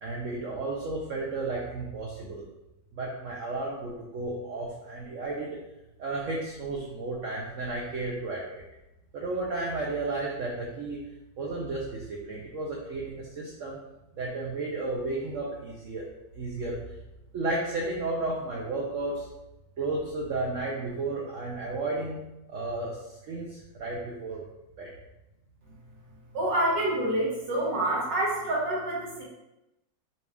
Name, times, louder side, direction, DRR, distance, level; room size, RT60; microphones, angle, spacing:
voice 1, 0.0-2.4 2.9-5.6 6.0-8.4 9.1-11.0 11.4-13.8 14.1-16.1 16.3-16.8 17.3-19.3 19.8-22.2 22.5-24.4 24.8-24.9, right 2 dB, 60° right, -3 dB, 0.8 m, -33 dB
voice 2, 26.3-29.2, right 1 dB, 80° right, -5 dB, 1.9 m, -27 dB
5.0 x 2.4 x 3.4 m, 0.94 s
omnidirectional pair, 1.9 m